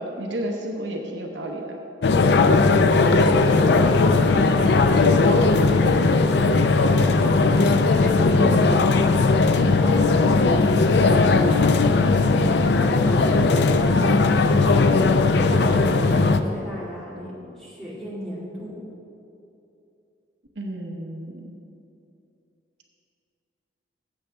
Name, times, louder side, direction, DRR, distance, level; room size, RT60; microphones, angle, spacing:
voice 1, 0.0-1.8 5.3-5.5 20.6-21.4, right 1 dB, 70° right, 2 dB, 0.9 m, -31 dB
sound 1, 2.0-16.4, left 3 dB, 60° left, 0.4 m, -18 dB
voice 2, 3.3-4.6 6.6-11.7 12.4-14.2 15.3-18.8, equal, ahead, -8 dB, 2.4 m, -36 dB
15.0 x 7.7 x 3.5 m, 2.7 s
head